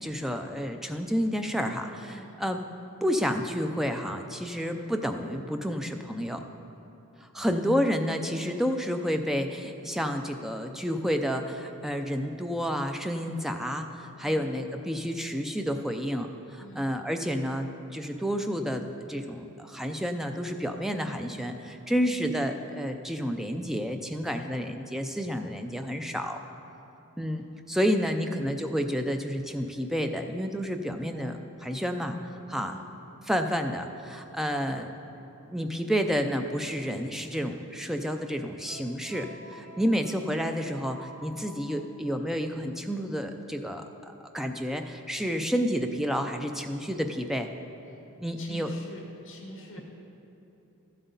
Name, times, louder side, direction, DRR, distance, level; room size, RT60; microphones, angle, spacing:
voice 1, 0.0-2.6 3.0-6.4 7.2-26.4 27.2-32.2 32.5-32.7 33.2-34.9 35.5-43.8 44.3-47.5 48.2-48.7, equal, ahead, 5 dB, 0.4 m, -30 dB
voice 2, 2.1-2.4 13.2-13.6 14.2-14.6 16.6-17.0 21.9-22.3 28.2-28.5 32.5-32.9 48.4-49.8, equal, 55° left, 0 dB, 1.7 m, -47 dB
sound 1, 31.0-33.1 36.0-36.1 37.5-37.6 38.1-38.2 38.6-41.9, right 1 dB, 75° right, 0.9 m, -51 dB
13.5 x 8.0 x 3.9 m, 2.9 s
head